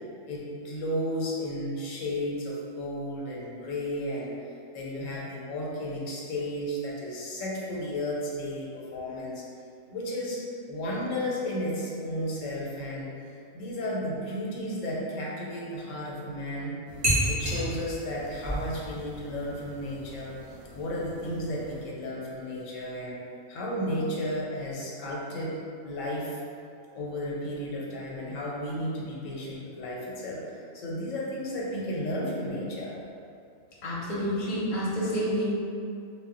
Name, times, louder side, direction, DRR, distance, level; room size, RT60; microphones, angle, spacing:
voice 1, 0.2-9.4 9.9-13.1 13.5-16.8 17.3-20.3 20.7-23.2 23.5-26.4 26.9-32.9, left 1 dB, 90° left, -4 dB, 1.0 m, -33 dB
sound 1, 16.9-21.8, right 1 dB, 35° right, 0.5 m, -33 dB
voice 2, 33.8-35.4, equal, 45° left, -7 dB, 0.6 m, -29 dB
2.1 x 2.1 x 3.6 m, 2.5 s
omnidirectional pair, 1.3 m